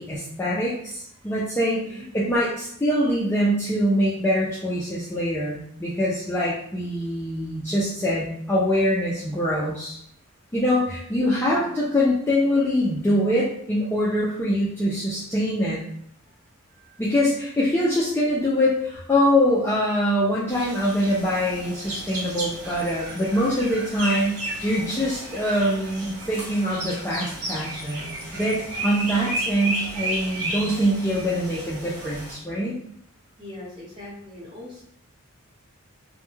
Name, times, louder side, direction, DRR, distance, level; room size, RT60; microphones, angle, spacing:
voice 1, 0.0-10.0 10.5-15.8 17.0-32.8, equal, 10° left, -8 dB, 0.3 m, -24 dB
voice 2, 1.7-2.1 11.5-11.7 16.2-16.3 16.7-17.0 33.4-34.8, left 1 dB, 20° right, -8 dB, 1.0 m, -41 dB
sound 1, 20.5-32.3, right 1 dB, 85° right, 1.0 m, -33 dB
2.2 x 2.1 x 3.0 m, 0.71 s
head